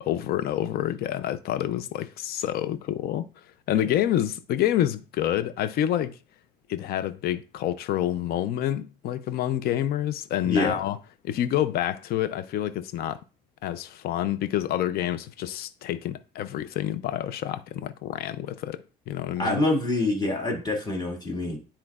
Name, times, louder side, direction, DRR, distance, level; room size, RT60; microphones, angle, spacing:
voice 1, 0.0-3.3 3.7-6.2 6.7-11.0 11.2-13.2 13.6-19.6, left 12 dB, 65° left, 0.5 m, -28 dB
voice 2, 10.4-10.8 19.4-21.6, left 2 dB, 25° left, 2.0 m, -26 dB
9.7 x 4.4 x 2.4 m
cardioid pair, 110°, 17 cm